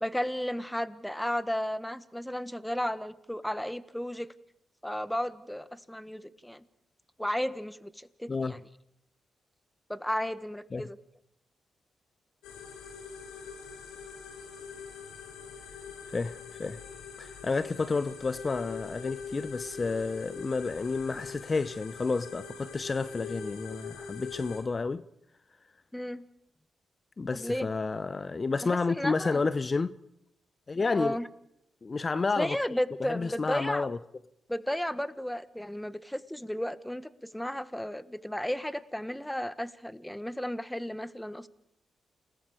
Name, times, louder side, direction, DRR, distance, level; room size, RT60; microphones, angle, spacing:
voice 1, 0.0-4.3 4.8-6.6 7.2-8.6 9.9-11.0 25.9-26.2 27.3-27.7 28.6-29.5 30.9-31.3 32.4-33.9 34.5-41.5, equal, 5° left, 1.4 m, -34 dB
sound 1, 12.4-24.6, left 5 dB, 85° left, 3.6 m, -43 dB
voice 2, 16.1-16.8 17.2-25.0 27.2-30.0 30.7-31.2 31.8-32.6 33.1-34.0, left 4 dB, 40° left, 0.8 m, -30 dB
29.0 x 19.0 x 5.0 m
supercardioid pair, 45°, 0 cm